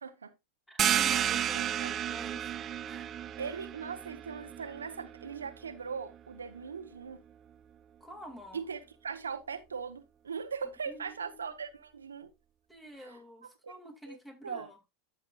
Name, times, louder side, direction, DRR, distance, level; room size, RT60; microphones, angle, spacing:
voice 1, 0.0-0.3 1.5-2.0 3.4-7.2 8.5-12.3 12.9-13.2 13.6-13.7 14.1-14.2 14.4-14.7, right 6 dB, 90° right, 0.8 m, -40 dB
voice 2, 0.7-2.5 2.8-3.2 8.0-8.6 10.9-11.5 12.7-14.8, equal, 5° left, 2.5 m, -49 dB
sound 1, 0.8-6.2, right 10 dB, 35° right, 0.5 m, -32 dB
12.5 x 6.3 x 2.3 m
hypercardioid pair, 95°, 0 cm